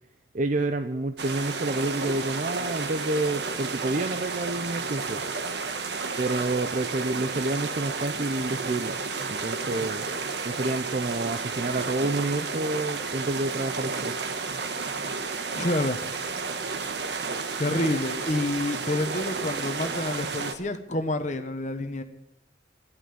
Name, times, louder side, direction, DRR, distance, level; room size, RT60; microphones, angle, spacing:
voice 1, 0.3-5.2 6.2-9.0 9.3-10.1 10.4-14.2, right 2 dB, 45° right, 8 dB, 0.6 m, -29 dB
sound 1, 1.2-20.6, right 4 dB, 70° right, 1.3 m, -32 dB
voice 2, 15.5-16.0 17.6-22.0, left 1 dB, 40° left, 9 dB, 1.1 m, -28 dB
13.0 x 11.0 x 8.7 m, 0.85 s
head